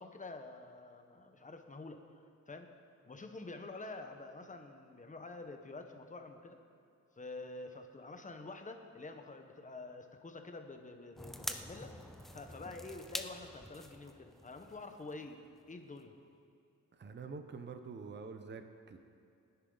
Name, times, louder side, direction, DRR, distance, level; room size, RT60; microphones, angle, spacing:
voice 1, 0.0-2.2 2.5-2.7 3.0-6.6 7.2-11.9 12.3-16.1, left 3 dB, 25° left, 5 dB, 1.2 m, -48 dB
sound 1, 11.2-15.7 16.0-16.1, equal, ahead, 0.6 m, -46 dB
voice 2, 16.9-19.0, right 5 dB, 35° right, 7 dB, 0.9 m, -46 dB
23.0 x 10.0 x 4.0 m, 2.5 s
cardioid pair, 115°, 31 cm